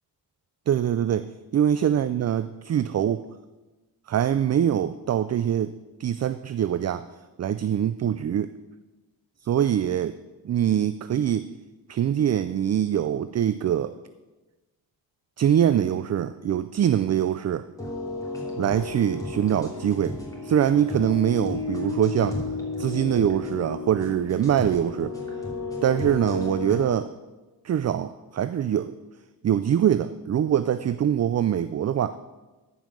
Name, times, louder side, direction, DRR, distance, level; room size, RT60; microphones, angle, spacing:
voice 1, 0.7-3.3 4.1-7.0 7.4-8.5 9.4-10.2 10.4-11.5 11.9-13.9 15.4-17.7 18.6-20.2 20.4-22.4 22.8-25.1 25.8-27.1 27.6-29.0 29.4-32.2, right 10 dB, 40° right, 12 dB, 0.4 m, -24 dB
sound 1, 17.8-26.8, left 3 dB, 10° left, 3.1 m, -32 dB
13.5 x 5.6 x 6.2 m, 1.2 s
cardioid pair, 95°, 41 cm